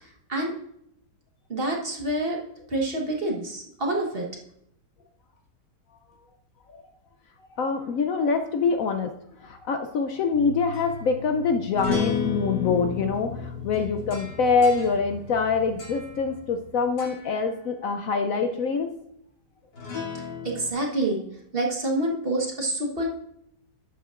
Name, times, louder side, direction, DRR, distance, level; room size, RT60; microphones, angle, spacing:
voice 1, 0.0-0.5 1.5-2.4 2.7-4.3 20.1-21.2 21.5-23.1, right 1 dB, 35° right, -1 dB, 1.4 m, -27 dB
voice 2, 7.6-9.1 9.4-18.9, left 5 dB, 65° left, 6 dB, 0.9 m, -25 dB
sound 1, 10.3-16.7 17.0-17.4 19.7-20.7, left 5 dB, 85° left, 3.2 m, -33 dB
11.5 x 8.0 x 2.5 m, 0.75 s
omnidirectional pair, 1.8 m